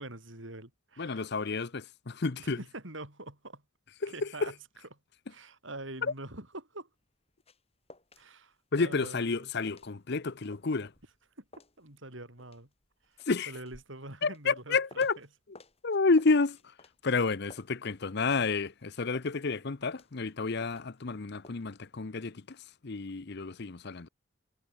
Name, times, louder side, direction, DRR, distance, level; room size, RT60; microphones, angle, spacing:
voice 1, 0.0-1.3 2.4-3.6 4.1-4.5 5.3-6.9 8.2-9.5 11.4-11.5 11.8-12.7 13.1-15.3, right 2 dB, 70° right, 5.7 m, -45 dB
voice 2, 1.0-2.6 4.0-4.5 6.0-6.1 8.7-10.9 13.2-13.5 14.2-15.2 15.5-16.7 17.0-24.1, left 4 dB, 55° left, 0.8 m, -30 dB
sound 1, 7.0-8.3 8.5-9.4 9.7-15.3 15.5-18.4 18.6-21.2 21.4-21.6, left 2 dB, 30° left, 6.7 m, -56 dB
head